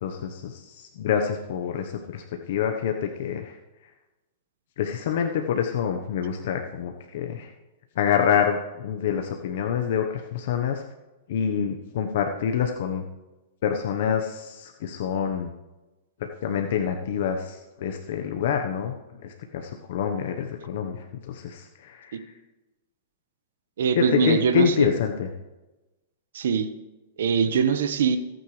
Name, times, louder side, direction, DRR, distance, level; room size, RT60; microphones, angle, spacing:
voice 1, 0.0-3.6 4.8-7.5 8.0-10.8 11.3-13.0 13.6-15.5 16.4-18.9 19.2-22.2 24.0-25.3, left 7 dB, 65° left, 4 dB, 1.1 m, -27 dB
voice 2, 23.8-24.9 26.3-26.7 27.2-28.2, right 6 dB, 80° right, 9 dB, 1.3 m, -22 dB
23.0 x 9.1 x 3.3 m, 1.1 s
hypercardioid pair, 145°, 0 cm